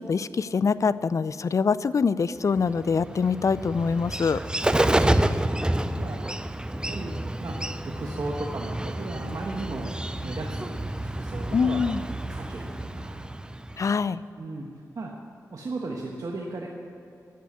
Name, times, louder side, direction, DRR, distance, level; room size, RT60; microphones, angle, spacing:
voice 1, 0.0-4.4 11.5-12.0 13.8-14.2, left 5 dB, 55° left, 17 dB, 0.4 m, -24 dB
Bird, 2.6-14.0, right 1 dB, 15° right, 0.6 m, -29 dB
voice 2, 4.6-5.5 6.0-6.2 6.9-7.6 7.8-9.9 10.2-11.9 12.3-13.3 14.4-14.7 14.9-15.1 15.5-16.7, right 2 dB, 60° right, -1 dB, 1.3 m, -36 dB
10.5 x 7.7 x 9.4 m, 2.8 s
cardioid pair, 50°, 7 cm